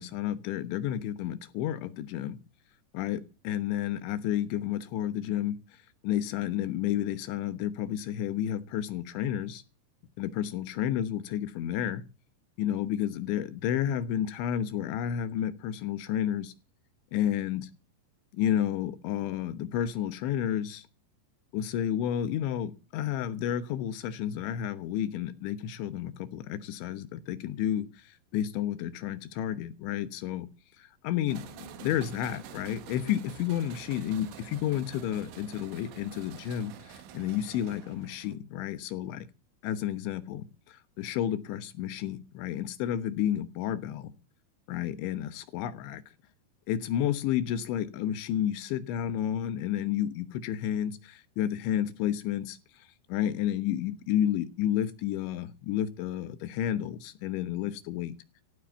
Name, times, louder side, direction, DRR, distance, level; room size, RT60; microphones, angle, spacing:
voice 1, 0.0-2.4 2.9-5.6 6.0-9.6 10.2-12.0 12.6-16.5 17.1-17.7 18.3-20.9 21.5-27.9 28.3-30.5 30.8-31.5 31.8-39.3 39.6-44.1 44.7-46.0 46.7-52.6 53.1-58.2, left 10 dB, 85° left, 3.6 m, -31 dB
sound 1, 31.3-38.4, right 8 dB, 85° right, 3.8 m, -47 dB
15.5 x 7.8 x 8.2 m
omnidirectional pair, 5.2 m